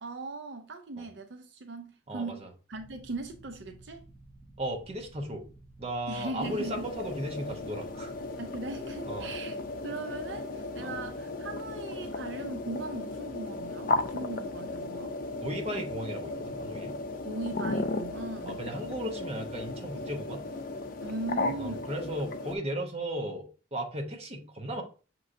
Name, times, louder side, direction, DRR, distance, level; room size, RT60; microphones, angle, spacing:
voice 1, 0.0-2.4 2.7-4.0 6.1-6.9 8.4-9.6 9.8-15.2 17.2-18.6 21.0-21.9, right 3 dB, 70° right, 0.5 m, -39 dB
voice 2, 2.1-2.5 4.6-5.4 5.8-8.1 9.1-9.3 10.8-10.9 15.4-17.0 18.4-20.4 21.6-24.8, right 1 dB, 35° right, 0.9 m, -36 dB
sound 1, 2.7-9.2, right 2 dB, 5° right, 0.9 m, -54 dB
sound 2, 6.4-22.6, left 3 dB, 50° left, 0.5 m, -35 dB
6.2 x 3.0 x 2.5 m
head